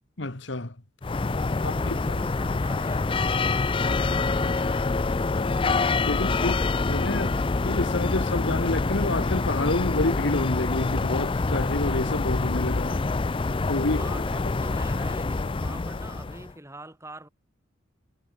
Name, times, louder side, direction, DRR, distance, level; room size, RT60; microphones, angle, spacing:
voice 1, 0.2-0.7 1.6-1.7 2.1-2.2 5.4-5.5 6.1-6.6 6.9-13.0 13.7-14.0, left 2 dB, 60° left, 1.7 m, -28 dB
sound 1, 1.0-16.5, left 3 dB, 25° left, 0.4 m, -26 dB
voice 2, 1.6-6.7 13.8-17.3, right 1 dB, 15° right, 6.9 m, -44 dB
head